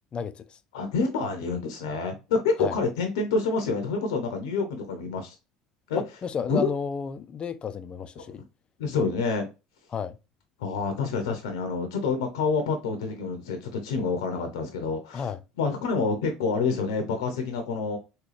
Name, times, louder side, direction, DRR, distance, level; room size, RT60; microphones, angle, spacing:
voice 1, 0.1-0.6 2.6-2.8 5.9-8.4 9.9-10.2 15.1-15.4, left 6 dB, 35° left, 0.4 m, -32 dB
voice 2, 0.7-5.3 5.9-6.0 6.5-6.7 8.3-8.4 8.8-9.5 10.6-15.3 15.6-18.0, left 4 dB, 80° left, 0.7 m, -27 dB
3.8 x 2.3 x 3.2 m
hypercardioid pair, 75°, 3 cm